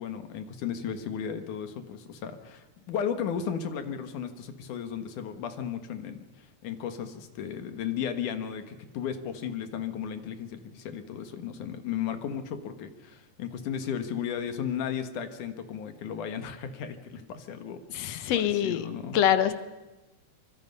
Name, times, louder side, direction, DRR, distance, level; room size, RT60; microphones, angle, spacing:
voice 1, 0.0-17.8 18.3-19.2, left 8 dB, 80° left, 8 dB, 2.9 m, -35 dB
voice 2, 17.9-18.9 19.1-19.5, left 10 dB, 65° left, 12 dB, 2.1 m, -24 dB
25.0 x 25.0 x 5.5 m, 1.1 s
omnidirectional pair, 3.5 m